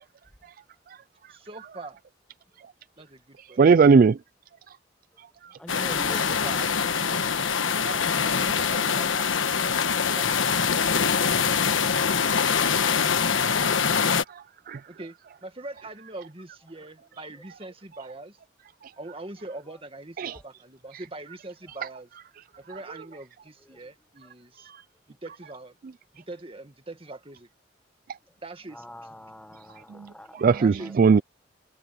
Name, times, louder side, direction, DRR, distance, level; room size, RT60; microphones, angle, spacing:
voice 1, 1.3-2.0 3.0-3.6 6.1-7.2 7.8-9.5 14.9-15.2 15.4-18.4 19.0-22.1 22.6-24.7 25.1-25.8 26.1-27.5 28.4-28.9 30.6-31.2, right 2 dB, 30° right, 2.0 m, -42 dB
voice 2, 3.6-4.2 5.4-5.5 12.4-12.5 14.1-14.8 20.2-20.4 30.3-31.2, right 5 dB, 45° right, 0.3 m, -19 dB
voice 3, 5.5-6.3 20.3-20.4 23.6-23.8 28.7-31.2, equal, 5° left, 1.0 m, -45 dB
sound 1, 5.7-14.2, left 6 dB, 90° left, 1.3 m, -24 dB
head